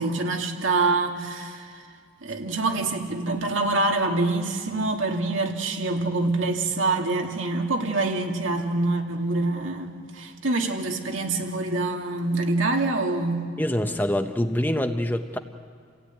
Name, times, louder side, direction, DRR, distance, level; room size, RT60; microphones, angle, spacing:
voice 1, 0.0-1.8 2.2-13.4, right 2 dB, 80° right, 2 dB, 2.4 m, -25 dB
voice 2, 13.6-15.4, left 1 dB, 10° left, 7 dB, 0.7 m, -25 dB
29.0 x 16.0 x 9.5 m, 2.1 s
head